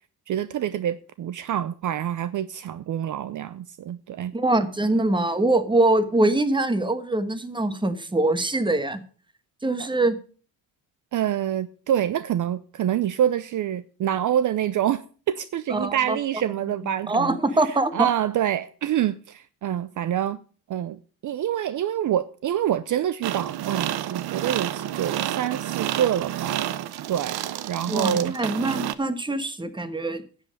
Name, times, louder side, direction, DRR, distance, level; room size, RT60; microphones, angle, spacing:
voice 1, 0.3-4.3 9.8-9.9 11.1-17.4 17.9-20.4 20.7-26.8 27.1-28.3, right 10 dB, 55° right, 0.6 m, -26 dB
voice 2, 4.3-9.0 9.6-10.2 15.7-16.2 17.1-18.1 27.9-30.2, right 2 dB, 10° right, 1.3 m, -23 dB
sound 1, 23.2-28.9, right 12 dB, 80° right, 0.8 m, -30 dB
10.5 x 7.9 x 6.4 m
cardioid pair, 100°, 38 cm